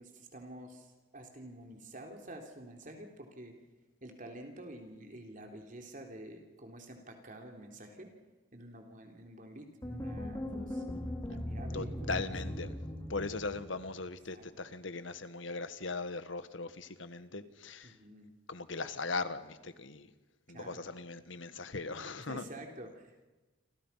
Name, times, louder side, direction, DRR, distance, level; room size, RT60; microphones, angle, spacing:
voice 1, 0.0-3.5 4.0-8.1 8.5-10.8 11.3-12.1 14.3-14.4 17.8-18.3 20.5-20.8 22.2-23.3, right 1 dB, 45° right, 3 dB, 3.3 m, -49 dB
sound 1, 9.8-14.1, left 1 dB, 20° left, 2.7 m, -39 dB
voice 2, 11.7-12.7 13.1-18.0 18.5-20.1 20.5-22.4, left 3 dB, 90° left, 12 dB, 1.7 m, -39 dB
29.0 x 26.0 x 5.8 m, 1.1 s
head